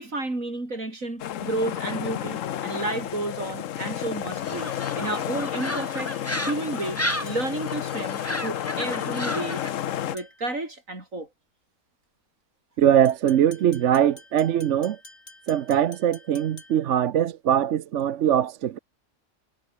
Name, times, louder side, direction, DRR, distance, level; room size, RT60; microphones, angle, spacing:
voice 1, 0.0-9.6 10.1-11.3, right 2 dB, 85° right, 6.2 m, -31 dB
sound 1, 1.2-10.2, left 10 dB, 75° left, 1.2 m, -31 dB
sound 2, 4.4-9.7, left 1 dB, 10° left, 3.9 m, -33 dB
sound 3, 7.3-7.7 10.2-10.6 13.1-17.0, left 2 dB, 55° left, 5.1 m, -49 dB
voice 2, 12.8-15.0 15.5-18.8, right 10 dB, 65° right, 1.0 m, -22 dB
omnidirectional pair, 1.4 m